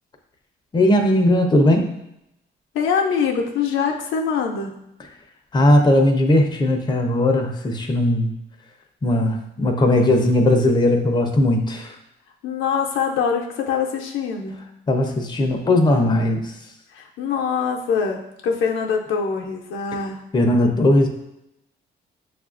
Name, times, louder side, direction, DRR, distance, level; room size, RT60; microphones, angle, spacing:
voice 1, 0.7-2.0 5.5-8.3 9.0-11.9 14.9-16.5 20.3-21.1, left 1 dB, 20° left, 3 dB, 0.5 m, -18 dB
voice 2, 2.7-4.8 12.4-14.7 16.9-20.3, left 6 dB, 85° left, 1 dB, 0.5 m, -24 dB
6.3 x 2.4 x 2.4 m, 0.85 s
cardioid pair, 90°, 20 cm